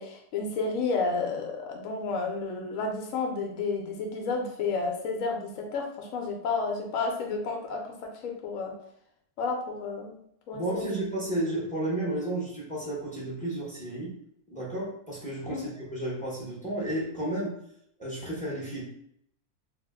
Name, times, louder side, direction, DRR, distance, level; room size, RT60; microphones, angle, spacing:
voice 1, 0.0-7.8 8.2-8.7 9.4-10.2 10.5-11.0 15.5-15.7, left 4 dB, 65° left, 1 dB, 0.9 m, -31 dB
voice 2, 10.5-14.1 14.5-17.6 18.0-18.8, right 1 dB, 5° left, -7 dB, 0.7 m, -32 dB
2.9 x 2.0 x 3.4 m, 0.71 s
omnidirectional pair, 1.7 m